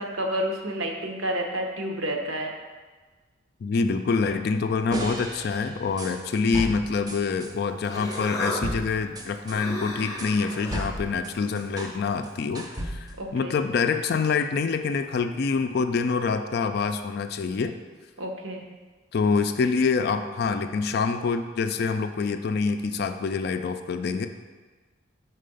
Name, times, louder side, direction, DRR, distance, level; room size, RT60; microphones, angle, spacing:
voice 1, 0.0-2.5 13.2-13.6 18.2-18.6, equal, 80° right, 2 dB, 0.9 m, -30 dB
voice 2, 3.6-17.7 19.1-24.3, left 4 dB, 50° left, 8 dB, 0.3 m, -26 dB
sound 1, 4.9-7.5 8.1-12.0 12.2-13.3, right 1 dB, 20° right, 0.5 m, -35 dB
Human voice, 7.4-12.6, left 1 dB, 20° left, 0.7 m, -37 dB
5.5 x 4.2 x 5.3 m, 1.3 s
head